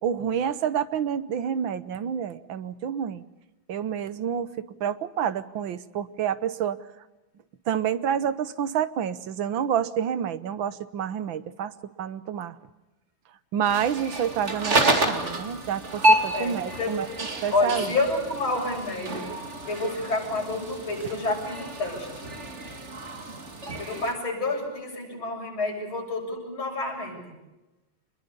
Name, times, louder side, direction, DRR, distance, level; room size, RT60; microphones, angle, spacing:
voice 1, 0.0-3.2 3.7-6.8 7.7-11.7 12.0-12.6 13.5-17.1 17.4-17.9, right 8 dB, 75° right, 14 dB, 1.8 m, -28 dB
sound 1, 13.6-24.1, right 1 dB, 35° right, 2.7 m, -28 dB
voice 2, 16.3-17.0 17.5-19.4 19.6-22.2 23.8-27.3, left 2 dB, 85° left, 0 dB, 8.3 m, -29 dB
27.0 x 22.0 x 6.9 m, 1.1 s
omnidirectional pair, 2.2 m